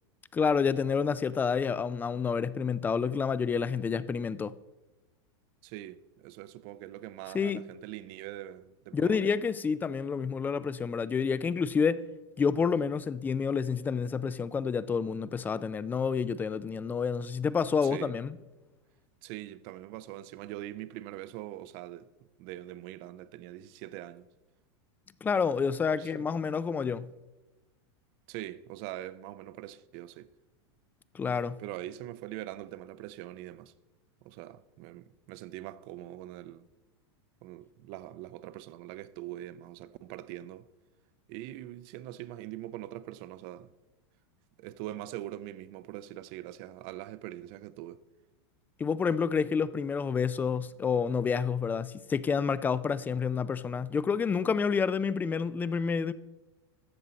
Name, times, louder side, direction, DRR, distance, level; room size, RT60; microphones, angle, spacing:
voice 1, 0.3-4.5 7.3-7.6 8.9-12.0 12.4-18.3 25.2-27.1 31.1-31.6 48.8-56.1, left 6 dB, 15° left, 0.3 m, -29 dB
voice 2, 5.6-9.3 17.8-18.1 19.2-22.1 22.4-24.3 25.9-26.3 28.3-30.3 31.6-33.7 34.2-36.7 37.4-40.7 41.3-43.7 44.6-48.0, right 14 dB, 50° right, 0.5 m, -43 dB
13.0 x 7.5 x 4.0 m
supercardioid pair, 135°, 14 cm